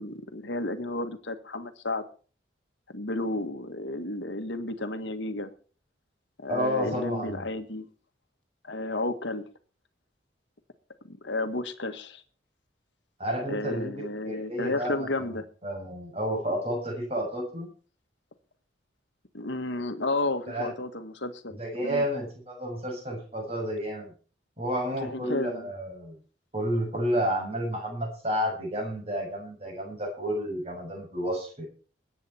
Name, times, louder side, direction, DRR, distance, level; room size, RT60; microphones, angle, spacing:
voice 1, 0.0-2.0 2.9-5.5 6.4-7.9 8.6-9.5 11.0-12.2 13.5-15.4 19.3-22.1 25.0-25.7, left 2 dB, 75° left, 1.7 m, -32 dB
voice 2, 6.5-7.5 13.2-15.3 15.6-17.7 20.5-20.7 21.5-24.1 24.6-26.2 26.5-31.7, equal, 35° right, 6.9 m, -31 dB
21.0 x 9.7 x 4.4 m
head